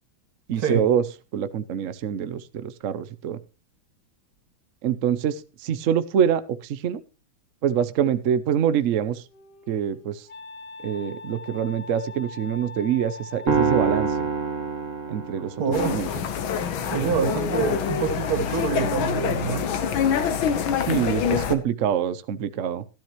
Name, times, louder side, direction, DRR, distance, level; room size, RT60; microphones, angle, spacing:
voice 1, 0.5-1.0 1.3-3.4 4.8-7.0 7.6-9.2 9.7-10.3 10.8-14.3 15.1-15.5 15.8-16.1 20.9-22.8, right 9 dB, 90° right, 12 dB, 0.6 m, -25 dB
Wind instrument woodwind instrument, 8.9-14.4, left 4 dB, 55° left, 1.7 m, -42 dB
sound 1, 13.5-15.9, right 5 dB, 35° right, 1.8 m, -25 dB
voice 2, 15.6-16.0 16.9-19.7, right 5 dB, 70° right, 5 dB, 3.1 m, -26 dB
sound 2, 15.7-21.6, left 7 dB, 70° left, 1.8 m, -26 dB
13.5 x 12.0 x 3.0 m, 0.29 s
omnidirectional pair, 2.4 m